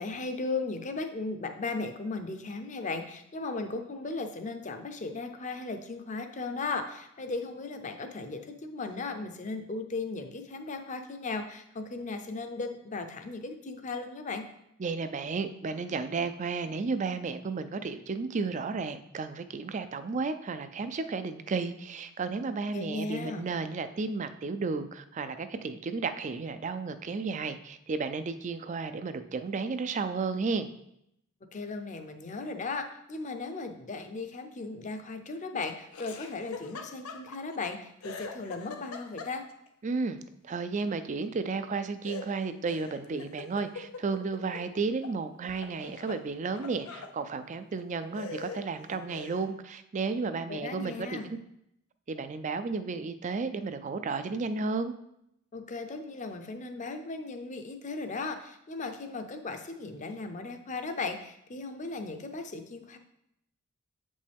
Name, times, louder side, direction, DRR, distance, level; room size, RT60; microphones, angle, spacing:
voice 1, 0.0-14.4 22.7-23.5 31.5-39.4 50.5-51.3 55.5-63.0, left 3 dB, 35° left, 7 dB, 0.6 m, -36 dB
voice 2, 14.8-30.7 39.8-40.2 40.4-51.4 52.1-54.9, right 4 dB, 35° right, 11 dB, 0.4 m, -33 dB
Laughter, 35.9-37.7 38.0-39.7 42.0-45.2 45.5-47.2 47.7-47.8 48.1-49.5, left 4 dB, 90° left, 0.6 m, -43 dB
7.6 x 5.3 x 3.5 m, 0.78 s
head